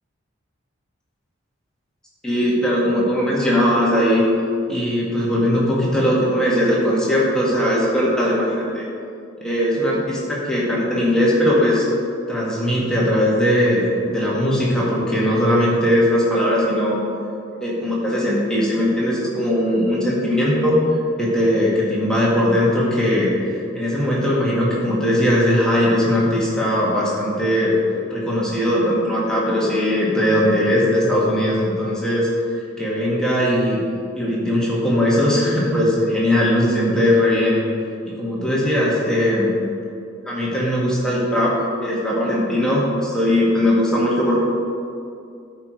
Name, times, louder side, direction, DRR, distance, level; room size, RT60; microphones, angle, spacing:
voice 1, 2.2-4.2 4.7-8.9 9.4-11.9 12.3-17.0 17.6-20.8 21.2-27.8 28.1-32.3 32.8-33.8 34.1-37.6 38.0-39.5 40.2-41.5 41.8-44.4, equal, 5° left, -6 dB, 1.7 m, -19 dB
12.0 x 4.7 x 5.1 m, 2.5 s
head